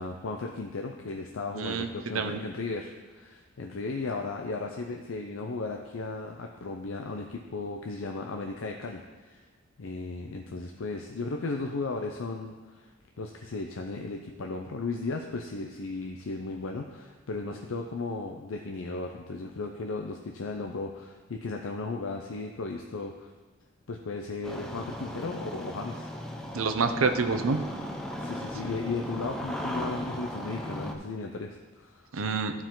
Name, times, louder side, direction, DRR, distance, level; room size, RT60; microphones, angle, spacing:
voice 1, 0.0-9.5 9.8-12.9 13.2-23.3 23.9-26.1 28.2-32.1, left 3 dB, 80° left, 3 dB, 0.6 m, -35 dB
voice 2, 1.5-1.9 2.1-2.4 26.5-27.6 32.1-32.5, right 4 dB, 85° right, 7 dB, 0.7 m, -27 dB
Engine starting, 24.4-30.9, equal, 5° left, 0.7 m, -37 dB
14.0 x 4.9 x 3.8 m, 1.3 s
head